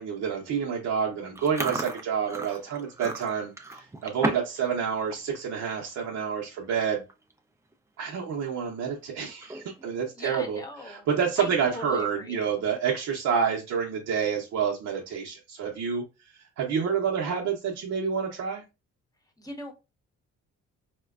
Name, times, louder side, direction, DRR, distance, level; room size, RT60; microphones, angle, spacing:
voice 1, 0.0-7.0 8.0-18.6, right 7 dB, 70° right, -2 dB, 0.7 m, -28 dB
Chewing mastication, 1.3-4.6 4.9-5.2 5.7-5.9 6.6-6.7 6.9-7.3 7.7-7.8 9.3-9.8, right 2 dB, 10° right, 0.5 m, -34 dB
voice 2, 10.2-11.1 11.4-12.4 19.4-19.7, left 2 dB, 10° left, 4 dB, 0.9 m, -39 dB
4.2 x 2.2 x 2.4 m, 0.27 s
cardioid pair, 90°, 30 cm